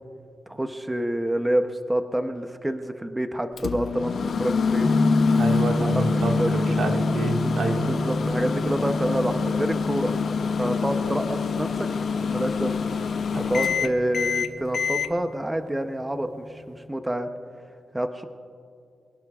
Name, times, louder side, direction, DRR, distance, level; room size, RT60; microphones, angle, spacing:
voice 1, 0.5-4.1 4.4-4.9 5.8-6.0 6.4-6.5 7.4-10.1 10.6-12.7 13.4-17.3 17.9-18.2, right 1 dB, 10° right, 7 dB, 0.7 m, -28 dB
Microwave oven, 3.6-15.1, left 5 dB, 60° left, 0.6 m, -26 dB
sound 1, 4.8-16.9, equal, 35° left, 1.8 m, -31 dB
voice 2, 5.3-7.8 13.3-13.5, right 2 dB, 80° right, 2 dB, 1.7 m, -28 dB
25.5 x 18.0 x 2.4 m, 2.4 s
wide cardioid pair, 140°, 0 cm